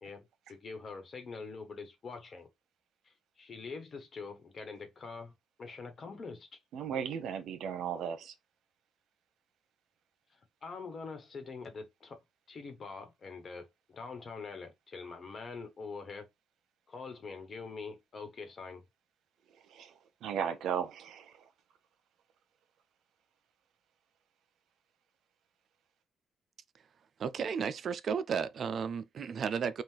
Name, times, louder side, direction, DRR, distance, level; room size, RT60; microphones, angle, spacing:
voice 1, 0.0-2.5 3.0-5.3 5.6-6.5 10.6-12.2 12.5-16.3 16.9-18.8, left 4 dB, 45° left, 1.3 m, -44 dB
voice 2, 6.7-8.3 19.7-19.9 20.2-21.3, right 8 dB, 80° right, 0.8 m, -35 dB
voice 3, 27.2-29.8, right 6 dB, 55° right, 0.3 m, -33 dB
3.9 x 2.4 x 4.5 m
cardioid pair, 90°, 0 cm